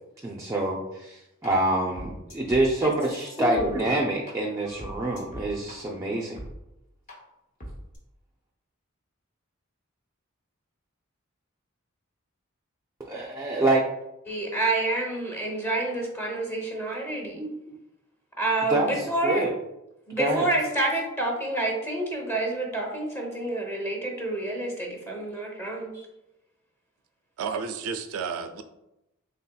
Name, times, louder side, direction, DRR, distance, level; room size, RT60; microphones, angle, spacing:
voice 1, 0.2-6.4 13.0-13.8 17.3-17.8 18.7-18.9 19.2-19.5 20.2-20.5, right 1 dB, 15° right, -1 dB, 0.4 m, -26 dB
sound 1, 1.4-1.5 2.0-4.3 4.6-5.8 6.4-6.5 7.1-7.2 7.6-8.0, equal, 40° left, 0.9 m, -41 dB
voice 2, 3.4-3.8 14.3-17.4 18.4-19.4 20.1-26.1, right 2 dB, 10° left, -1 dB, 0.8 m, -28 dB
voice 3, 27.4-28.6, right 5 dB, 85° right, 8 dB, 0.4 m, -31 dB
4.2 x 3.4 x 2.2 m, 0.90 s
head